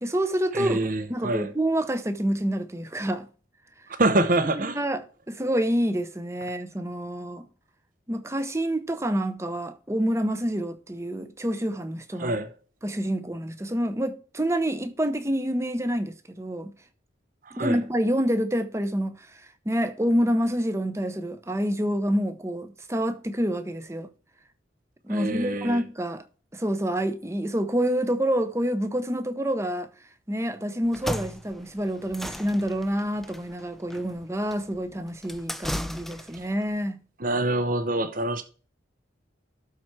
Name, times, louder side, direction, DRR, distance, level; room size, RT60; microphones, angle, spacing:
voice 1, 0.0-0.8 1.1-3.3 4.6-7.5 8.1-12.4 12.8-16.7 17.5-24.1 25.0-26.2 26.5-29.9 30.3-37.0, equal, 15° right, 0.7 m, -27 dB
voice 2, 0.5-1.5 4.0-4.8 12.2-12.5 17.5-17.8 25.1-25.8 37.2-38.4, right 2 dB, 45° right, 0.7 m, -25 dB
sound 1, 30.8-36.5, equal, ahead, 0.3 m, -36 dB
12.5 x 4.4 x 4.7 m
head